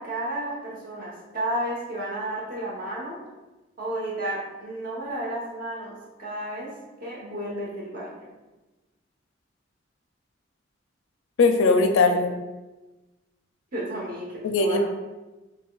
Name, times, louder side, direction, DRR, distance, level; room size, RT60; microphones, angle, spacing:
voice 1, 0.0-3.2 3.8-5.9 6.2-6.7 7.0-8.3 13.7-14.3 14.6-14.8, right 1 dB, 50° right, -4 dB, 1.1 m, -32 dB
voice 2, 11.4-12.3 14.4-14.8, left 3 dB, 90° left, 5 dB, 0.4 m, -20 dB
5.7 x 2.2 x 2.3 m, 1.1 s
head